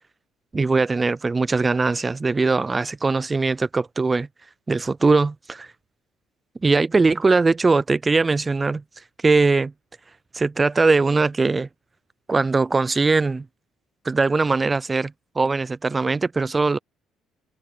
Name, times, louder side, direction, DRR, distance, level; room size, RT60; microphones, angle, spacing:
voice 1, 0.5-4.3 4.7-5.7 6.6-8.8 9.2-9.7 10.3-11.7 12.3-13.4 14.0-16.8, right 3 dB, 25° right, 0.4 m, -20 dB
supercardioid pair, 65°, 0 cm